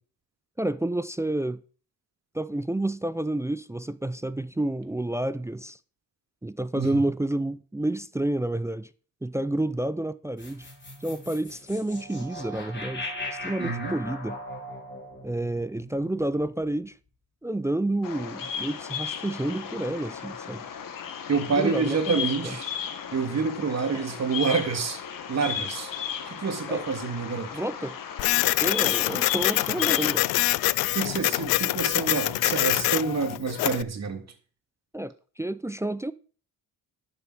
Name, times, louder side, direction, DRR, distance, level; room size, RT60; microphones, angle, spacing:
voice 1, 0.6-1.6 2.3-5.8 6.4-8.9 9.2-10.7 11.0-13.1 13.4-14.4 15.2-17.0 17.4-20.7 21.5-22.6 23.9-24.0 26.7-26.9 27.5-28.0 28.6-30.3 34.9-36.1, right 1 dB, 10° right, 0.4 m, -29 dB
sound 1, 10.4-16.7, left 1 dB, 30° left, 4.8 m, -39 dB
voice 2, 13.1-14.0 21.3-22.7 23.1-25.0 25.3-25.9 26.3-27.5 30.9-34.2, right 5 dB, 45° right, 2.9 m, -28 dB
Bird vocalization bird call bird song, 18.0-30.2, left 8 dB, 65° left, 1.7 m, -35 dB
Printer, 28.2-33.8, left 18 dB, 85° left, 0.5 m, -25 dB
11.5 x 7.1 x 6.2 m
cardioid pair, 90°, 36 cm